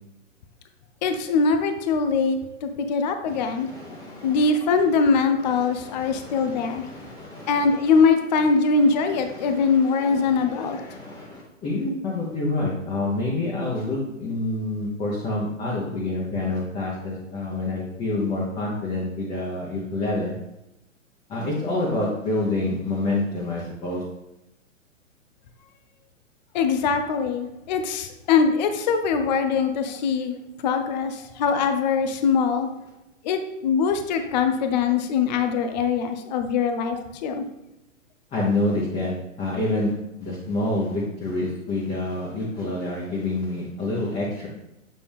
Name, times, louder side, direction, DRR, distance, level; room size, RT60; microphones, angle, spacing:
voice 1, 1.0-3.7 4.2-6.9 7.5-11.0 26.5-30.3 30.6-32.7 33.2-37.4, left 5 dB, 35° left, 7 dB, 0.6 m, -22 dB
voice 2, 3.2-4.5 5.4-8.0 8.3-8.4 8.7-20.3 21.3-24.0 38.3-39.1 39.4-39.9 40.2-44.5, left 2 dB, 15° left, -5 dB, 1.0 m, -28 dB
7.5 x 4.1 x 3.5 m, 0.91 s
figure-of-eight pair, 120°, 40 cm